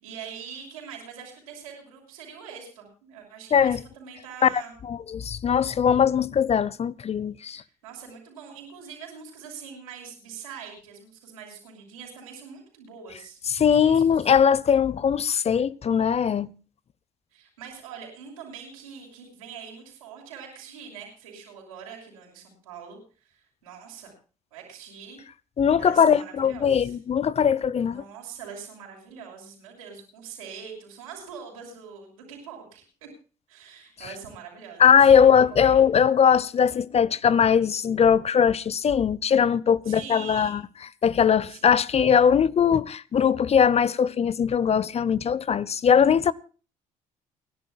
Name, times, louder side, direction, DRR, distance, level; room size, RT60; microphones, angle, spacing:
voice 1, 0.0-4.7 7.5-14.3 17.3-24.1 24.5-25.2 25.8-27.0 27.8-33.1 33.5-35.9 39.8-40.6 41.5-41.8, right 6 dB, 85° right, 6.3 m, -43 dB
voice 2, 4.9-7.6 13.5-16.5 25.6-28.0 34.8-40.6 41.0-46.3, left 7 dB, 40° left, 0.7 m, -20 dB
29.0 x 11.5 x 2.2 m
hypercardioid pair, 55°, 17 cm